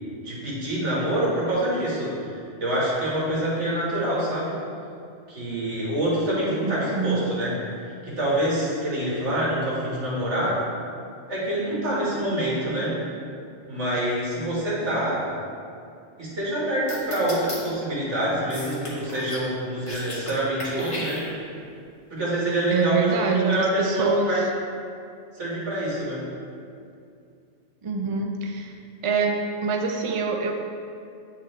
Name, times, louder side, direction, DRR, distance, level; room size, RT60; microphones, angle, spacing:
voice 1, 0.2-4.6 5.3-7.5 7.8-10.6 11.3-12.9 13.7-15.2 16.2-21.2 22.1-24.4 25.3-26.2, right 1 dB, 75° right, -7 dB, 1.9 m, -26 dB
voice 2, 6.4-7.3 22.7-24.3 27.8-28.8 29.0-30.5, right 4 dB, 45° right, 1 dB, 0.4 m, -25 dB
sound 1, 16.9-17.6 18.5-19.5 19.8-20.3 20.6-21.6, left 1 dB, 30° left, 0.9 m, -35 dB
8.9 x 3.7 x 3.2 m, 2.4 s
omnidirectional pair, 1.2 m